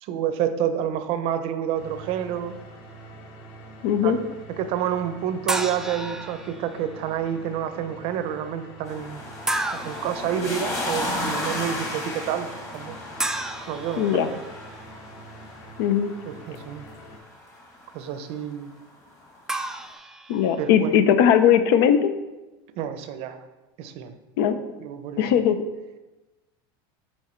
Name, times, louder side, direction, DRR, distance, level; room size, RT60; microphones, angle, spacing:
voice 1, 0.0-2.6 4.0-4.2 4.5-9.2 9.8-12.5 12.7-12.9 13.7-14.4 16.2-16.9 17.9-18.7 20.6-21.0 22.8-23.4 23.8-24.1 24.8-25.2, right 9 dB, 50° right, 10 dB, 0.6 m, -29 dB
sound 1, 1.7-17.2, right 1 dB, 45° left, 1.4 m, -45 dB
voice 2, 3.8-4.2 14.0-14.3 15.8-16.1 20.3-22.1 24.4-24.5 25.2-25.6, left 9 dB, 75° left, 10 dB, 0.6 m, -19 dB
sound 2, 5.5-6.8 9.5-10.2 13.2-14.8 19.5-20.7, right 2 dB, 5° right, 0.3 m, -31 dB
sound 3, 8.9-17.9 19.2-19.3, left 1 dB, 25° left, 1.4 m, -34 dB
6.1 x 4.6 x 4.3 m, 1.1 s
supercardioid pair, 140°, 13 cm